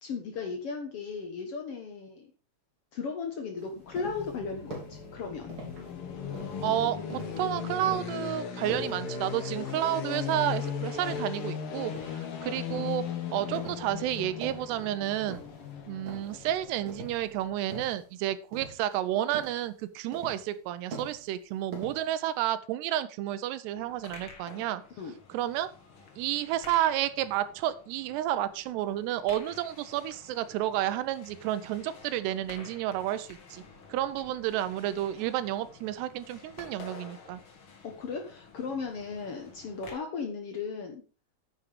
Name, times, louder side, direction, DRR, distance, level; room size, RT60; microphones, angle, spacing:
voice 1, 0.0-2.3 2.9-5.5 25.0-25.1 37.8-41.0, left 5 dB, 90° left, 4 dB, 1.3 m, -36 dB
sound 1, 3.6-4.4 4.7-5.0 5.5-5.9 6.3-7.5 7.9-8.2 8.7-9.1 9.5-9.9 10.3-11.4 11.9-12.3 12.7-13.0 13.6-14.0 14.3-14.8 15.3-15.7 16.1-16.5 16.9-17.3 17.7-18.1 18.5-19.1 19.3-19.7 20.1-20.6 20.9-21.4 21.7-22.4, right 4 dB, 55° right, 4.1 m, -44 dB
sound 2, 3.8-17.7, left 7 dB, 70° left, 1.3 m, -37 dB
voice 2, 6.6-7.0 7.4-13.0 13.3-15.4 15.9-24.8 25.3-25.7 26.2-33.6 33.9-37.4, right 12 dB, 85° right, 14 dB, 2.9 m, -31 dB
sound 3, 23.7-39.9, left 4 dB, 40° left, 2.0 m, -51 dB
9.7 x 7.3 x 5.0 m, 0.35 s
omnidirectional pair, 4.7 m